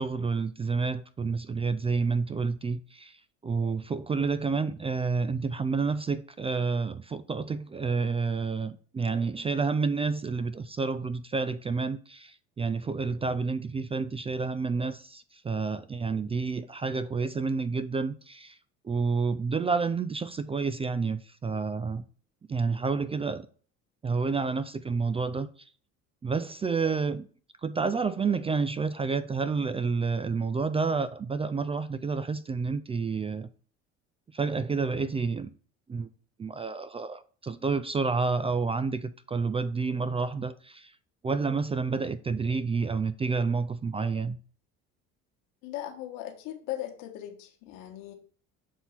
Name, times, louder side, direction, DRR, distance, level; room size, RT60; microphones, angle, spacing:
voice 1, 0.0-3.1 3.4-18.6 18.8-22.0 22.5-23.5 24.0-25.5 26.2-27.3 27.6-33.5 34.3-35.5 35.9-36.1 36.4-40.9 41.2-44.4, right 4 dB, 20° right, 0.3 m, -29 dB
voice 2, 45.6-48.1, left 13 dB, 80° left, 1.5 m, -38 dB
7.6 x 2.7 x 5.7 m
supercardioid pair, 85°, 33 cm